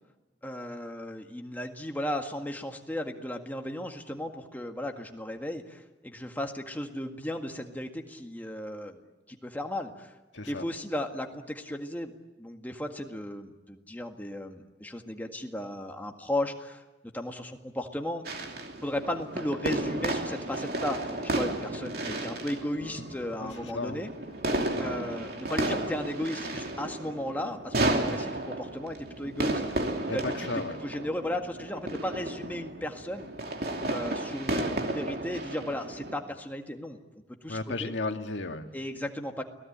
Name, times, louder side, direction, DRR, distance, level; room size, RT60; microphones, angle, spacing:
voice 1, 0.4-9.0 9.3-10.1 10.5-12.1 12.4-16.8 17.1-18.2 18.8-24.1 24.8-29.8 30.1-30.5 30.8-33.3 33.9-37.0 37.4-37.9 38.7-39.4, left 1 dB, 10° left, 3 dB, 1.8 m, -35 dB
sound 1, 18.2-36.1, right 1 dB, 55° right, 2.8 m, -33 dB
voice 2, 23.4-24.0 30.1-30.8 37.5-38.6, left 3 dB, 85° left, 5 dB, 1.8 m, -34 dB
29.5 x 19.0 x 8.8 m, 1.1 s
head